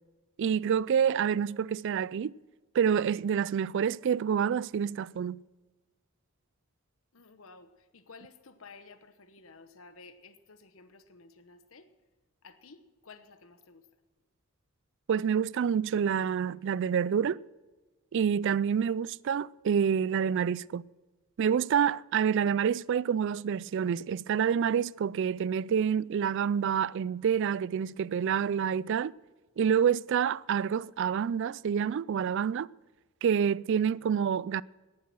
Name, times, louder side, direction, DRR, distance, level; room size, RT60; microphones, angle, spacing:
voice 1, 0.4-2.3 2.7-5.4 15.1-17.4 18.1-20.8 21.4-29.1 29.6-32.7 33.2-34.6, right 7 dB, 60° right, 0.3 m, -27 dB
voice 2, 7.1-11.9 12.4-13.9, left 4 dB, 65° left, 1.1 m, -53 dB
18.0 x 7.6 x 6.1 m
head